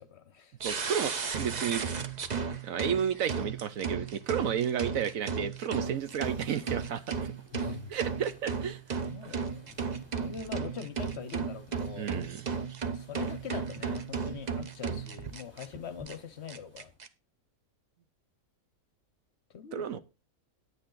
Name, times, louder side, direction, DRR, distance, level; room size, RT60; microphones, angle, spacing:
voice 1, 0.0-0.6 7.5-8.0 9.1-9.8 10.2-12.1 12.9-16.9 19.5-20.0, left 7 dB, 55° left, 0.9 m, -43 dB
sound 1, 0.6-15.7 16.1-16.2 16.5-17.1, right 5 dB, 40° right, 0.7 m, -35 dB
voice 2, 0.6-1.8 2.6-7.2 7.9-9.0 12.0-12.4 19.7-20.0, right 8 dB, 70° right, 1.1 m, -32 dB
sound 2, 5.8-17.0, left 1 dB, 5° right, 3.2 m, -56 dB
9.6 x 9.2 x 3.8 m
omnidirectional pair, 1.6 m